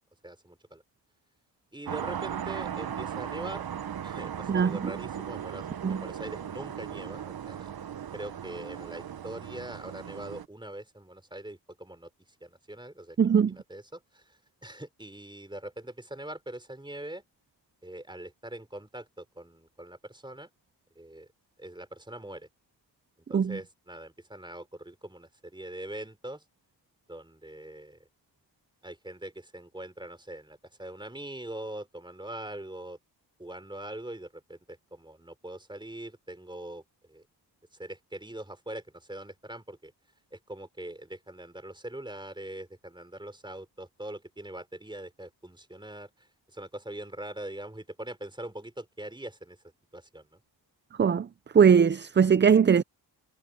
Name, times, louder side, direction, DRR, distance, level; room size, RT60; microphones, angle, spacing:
voice 1, 0.2-0.8 1.7-3.6 4.0-7.7 8.1-12.1 12.4-13.2 13.5-17.2 17.8-20.5 21.0-21.3 21.6-22.5 23.3-26.4 27.1-28.1 28.8-33.0 33.4-36.8 37.1-37.2 37.7-39.9 40.3-49.6 49.9-50.4, right 1 dB, 10° right, 4.0 m, -42 dB
sound 1, 1.9-10.5, right 9 dB, 55° right, 1.0 m, -37 dB
voice 2, 13.2-13.5 23.3-23.6 51.0-51.3 51.5-52.8, right 7 dB, 25° right, 0.4 m, -20 dB
cardioid pair, 80°, 43 cm